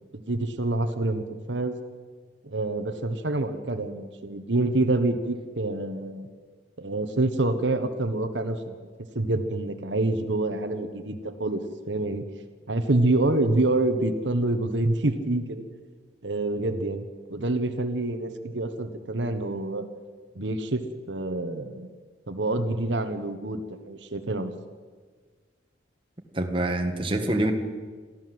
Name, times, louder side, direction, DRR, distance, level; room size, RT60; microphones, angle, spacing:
voice 1, 0.1-1.8 2.4-6.3 6.8-8.7 9.1-12.2 12.7-15.6 16.2-19.9 20.3-21.9 22.3-24.5, right 2 dB, 80° right, 7 dB, 1.4 m, -27 dB
voice 2, 26.3-27.5, right 1 dB, 30° right, 4 dB, 1.8 m, -25 dB
23.0 x 15.0 x 7.9 m, 1.5 s
head